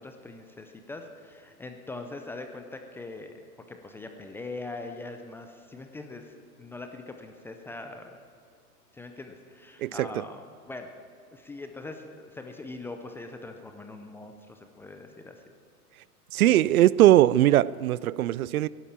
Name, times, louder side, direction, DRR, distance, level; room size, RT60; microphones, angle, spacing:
voice 1, 0.0-3.4 3.7-8.2 8.9-10.9 11.3-15.4, left 2 dB, 5° left, 0.4 m, -42 dB
voice 2, 16.3-18.7, right 14 dB, 65° right, 0.5 m, -20 dB
17.0 x 11.0 x 7.4 m
hypercardioid pair, 110°, 46 cm